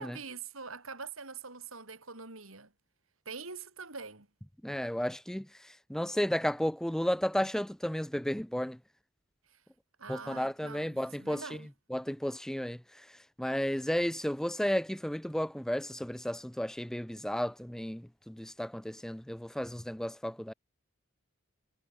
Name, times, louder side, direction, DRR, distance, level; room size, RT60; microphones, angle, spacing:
voice 1, 0.0-2.7 3.2-4.3 9.5-9.6 10.0-11.7, right 4 dB, 80° right, 4.8 m, -44 dB
voice 2, 4.6-5.5 5.9-8.8 10.1-11.4 11.9-12.8 13.4-20.5, equal, ahead, 0.4 m, -33 dB
head